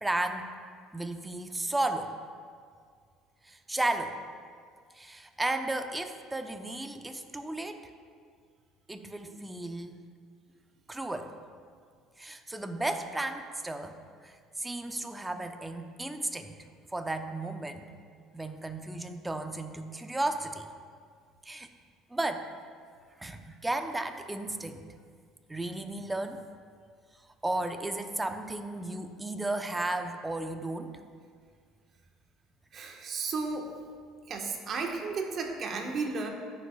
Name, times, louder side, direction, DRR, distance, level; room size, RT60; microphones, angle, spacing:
voice 1, 0.0-0.6 0.9-2.2 3.4-4.2 4.9-7.9 8.9-10.0 10.9-11.4 12.2-16.6 16.9-17.8 18.3-20.7 21.4-21.7 22.1-22.5 23.2-24.9 25.5-26.4 27.4-31.0, right 2 dB, 15° right, 7 dB, 0.8 m, -34 dB
voice 2, 32.7-33.7 34.3-36.3, right 4 dB, 50° right, 2 dB, 1.3 m, -33 dB
14.5 x 6.6 x 2.4 m, 2.1 s
hypercardioid pair, 65°, 0 cm